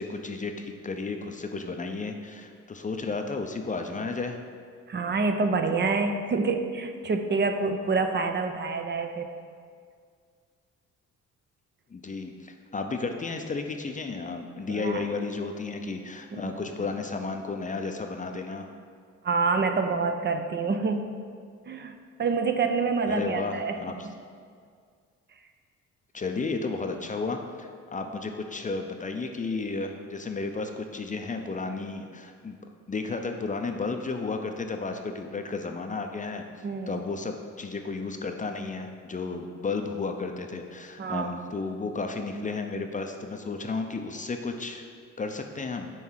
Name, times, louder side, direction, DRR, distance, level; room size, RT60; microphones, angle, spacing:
voice 1, 0.0-4.4 11.9-18.7 23.1-24.1 26.1-32.6 32.9-44.9 45.2-45.9, left 4 dB, 25° left, 5 dB, 0.6 m, -33 dB
voice 2, 4.9-9.3 14.7-15.0 16.3-16.4 19.2-21.1 21.7-23.8 36.6-37.0 41.0-41.3, right 4 dB, 35° right, 6 dB, 0.6 m, -27 dB
5.6 x 4.6 x 6.3 m, 2.1 s
cardioid pair, 90°, 30 cm